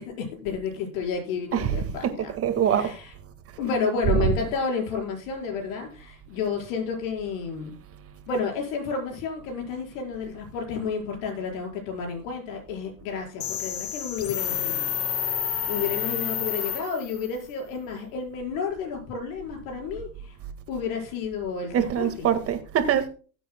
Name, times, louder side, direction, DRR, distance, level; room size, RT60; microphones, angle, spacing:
voice 1, 0.0-2.3 2.6-3.1 3.6-7.8 8.3-20.4 20.7-22.4, left 5 dB, 65° left, 5.0 m, -31 dB
voice 2, 2.3-2.9 4.1-4.3 21.7-23.1, right 8 dB, 35° right, 1.8 m, -23 dB
sound 1, 13.4-17.3, left 10 dB, 35° left, 0.9 m, -29 dB
18.5 x 8.2 x 2.2 m
supercardioid pair, 120°, 43 cm